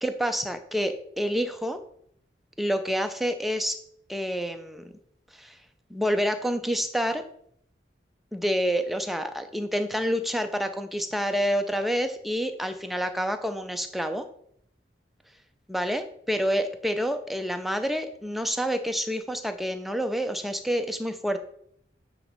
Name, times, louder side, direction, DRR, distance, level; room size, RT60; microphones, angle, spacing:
voice 1, 0.0-1.8 2.6-3.8 4.1-4.9 5.3-5.6 5.9-7.2 8.3-14.3 15.7-21.4, equal, ahead, 7 dB, 0.5 m, -28 dB
8.8 x 3.1 x 5.1 m, 0.68 s
head